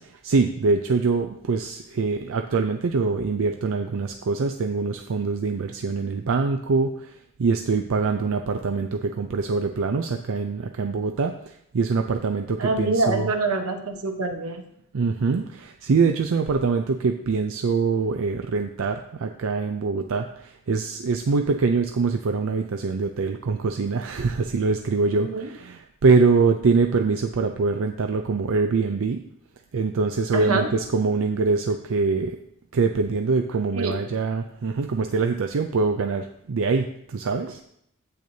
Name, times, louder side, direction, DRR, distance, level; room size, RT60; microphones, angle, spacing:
voice 1, 0.0-13.3 14.9-29.2 29.7-32.4 32.7-37.6, right 4 dB, 65° right, 5 dB, 0.5 m, -24 dB
voice 2, 12.6-14.6 25.1-25.5 30.3-30.7 33.7-34.0, right 3 dB, 85° right, 5 dB, 1.1 m, -25 dB
9.2 x 8.4 x 2.7 m, 0.73 s
head